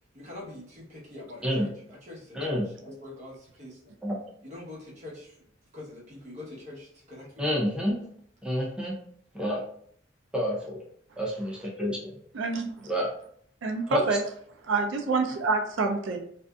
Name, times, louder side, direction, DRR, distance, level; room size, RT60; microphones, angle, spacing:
voice 1, 0.1-3.9 4.4-5.4 5.7-7.6, left 2 dB, 40° right, -6 dB, 0.9 m, -44 dB
voice 2, 2.3-2.7 4.0-4.2 7.4-8.0 8.4-8.9 9.3-9.6 10.3-10.8 11.2-12.1 12.9-13.1 13.9-14.0, equal, 5° right, -3 dB, 0.5 m, -28 dB
voice 3, 12.3-12.9 13.6-14.2 14.6-16.2, right 3 dB, 80° right, 4 dB, 0.4 m, -27 dB
2.6 x 2.4 x 2.2 m, 0.64 s
head